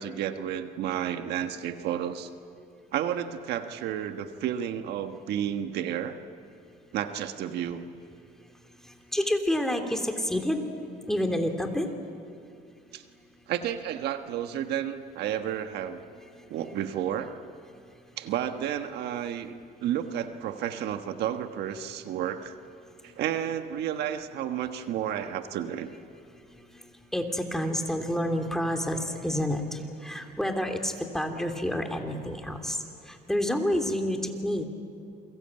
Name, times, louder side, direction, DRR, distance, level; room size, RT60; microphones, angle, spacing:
voice 1, 0.0-2.3 2.9-6.2 6.9-7.8 12.9-13.0 13.5-16.0 16.5-17.3 18.2-19.5 19.8-22.6 23.0-25.9, right 10 dB, 80° right, 8 dB, 1.4 m, -31 dB
voice 2, 9.1-10.6 11.1-11.9 27.1-34.7, left 1 dB, 5° left, 4 dB, 3.1 m, -29 dB
28.5 x 23.0 x 8.9 m, 2.5 s
cardioid pair, 110°, 17 cm